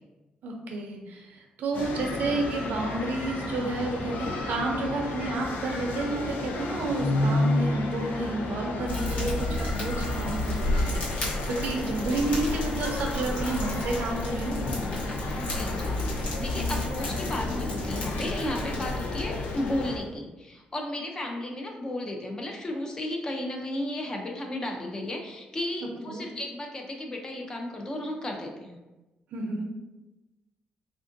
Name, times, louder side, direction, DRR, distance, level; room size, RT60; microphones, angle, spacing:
voice 1, 0.4-14.6 26.1-26.2 29.3-29.6, right 2 dB, 70° right, 1 dB, 0.5 m, -31 dB
sound 1, 1.7-20.0, left 2 dB, 85° left, 0.4 m, -32 dB
Fire, 8.9-20.0, left 1 dB, 55° left, 1.0 m, -32 dB
voice 2, 15.4-28.8, left 1 dB, 25° left, 2 dB, 0.4 m, -34 dB
3.5 x 2.5 x 2.5 m, 1.1 s
cardioid pair, 155°, 3 cm